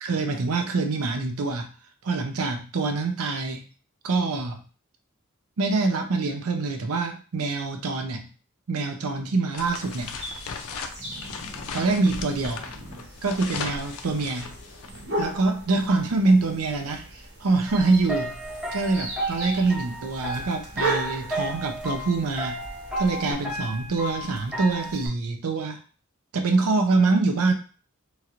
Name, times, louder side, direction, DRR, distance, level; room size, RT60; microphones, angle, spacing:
voice 1, 0.0-1.7 2.0-3.7 4.0-4.6 5.6-8.3 8.7-10.2 11.7-12.7 13.2-14.5 15.2-18.3 18.7-22.6 23.0-25.8 26.3-27.5, right 3 dB, 85° right, 5 dB, 0.5 m, -25 dB
sound 1, 9.5-15.0, left 5 dB, 80° left, 0.4 m, -37 dB
sound 2, 9.6-23.3, right 1 dB, 50° right, 1.0 m, -37 dB
sound 3, 17.7-25.1, right 1 dB, 5° right, 0.6 m, -33 dB
3.0 x 2.4 x 2.9 m, 0.37 s
head